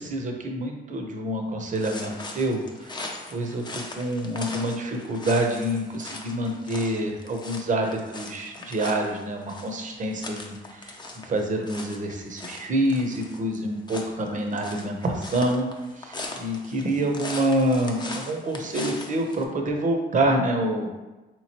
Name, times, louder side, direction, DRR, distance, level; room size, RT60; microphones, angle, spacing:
voice 1, 0.0-2.9 3.3-15.7 16.0-20.9, right 1 dB, 40° right, 3 dB, 0.6 m, -27 dB
sound 1, 1.7-19.4, left 2 dB, 20° left, 0.5 m, -40 dB
3.7 x 3.0 x 2.8 m, 1.1 s
cardioid pair, 90°, 20 cm